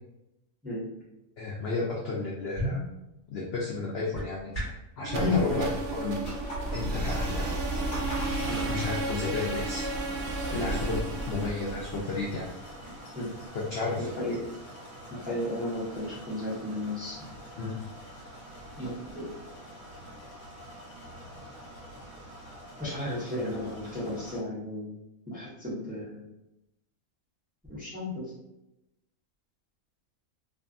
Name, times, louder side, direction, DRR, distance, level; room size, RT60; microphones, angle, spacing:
voice 1, 1.4-2.8 3.3-4.7 5.0-6.2 6.7-7.5 8.7-9.9 10.5-12.5 13.7-14.1 17.6-17.8, left 3 dB, 75° left, -3 dB, 0.5 m, -32 dB
sound 1, 2.5-5.0, equal, 30° left, 1.2 m, -37 dB
sound 2, 5.0-13.0, right 2 dB, 70° right, 0.6 m, -32 dB
voice 2, 5.1-5.6 8.5-8.6 10.5-10.7 12.8-13.3 14.0-14.4 15.1-17.3 18.8-19.3 22.8-24.9 25.3-26.2 27.7-28.2, left 2 dB, 10° right, -9 dB, 0.6 m, -33 dB
sound 3, 6.2-24.4, equal, 60° left, 1.3 m, -44 dB
2.5 x 2.4 x 2.5 m, 0.91 s
omnidirectional pair, 1.6 m